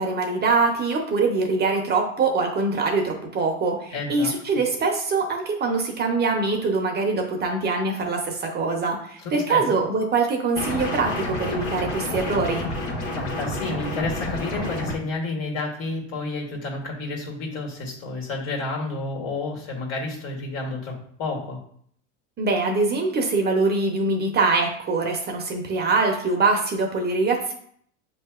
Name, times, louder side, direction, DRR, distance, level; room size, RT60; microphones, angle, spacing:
voice 1, 0.0-12.7 22.4-27.5, right 3 dB, 25° right, 2 dB, 0.7 m, -23 dB
voice 2, 3.9-4.3 9.2-9.8 13.1-21.6, left 3 dB, 60° left, 0 dB, 1.7 m, -30 dB
sound 1, 10.6-14.9, left 1 dB, 75° left, 1.4 m, -29 dB
6.9 x 2.8 x 2.4 m, 0.62 s
supercardioid pair, 115°, 38 cm